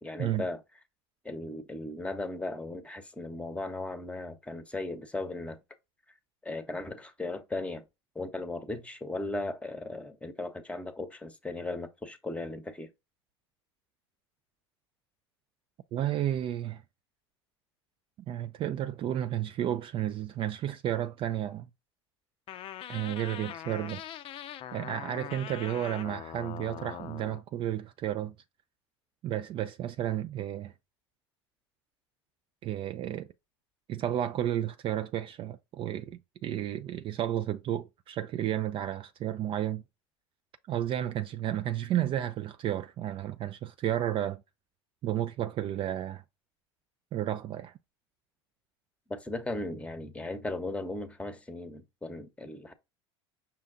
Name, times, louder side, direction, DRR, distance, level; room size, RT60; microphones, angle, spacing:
voice 1, 0.0-0.6 1.2-5.6 6.4-7.9 8.1-12.9 49.1-52.7, left 2 dB, 10° left, 0.9 m, -37 dB
voice 2, 15.9-16.8 18.3-21.7 22.9-24.0 24.7-28.3 29.2-30.7 32.6-33.3 33.9-39.8 40.7-44.4 45.0-46.2 47.1-47.7, right 11 dB, 35° right, 0.4 m, -32 dB
sound 1, 22.5-27.4, left 11 dB, 40° left, 0.5 m, -42 dB
5.7 x 2.3 x 3.8 m
hypercardioid pair, 80°, 15 cm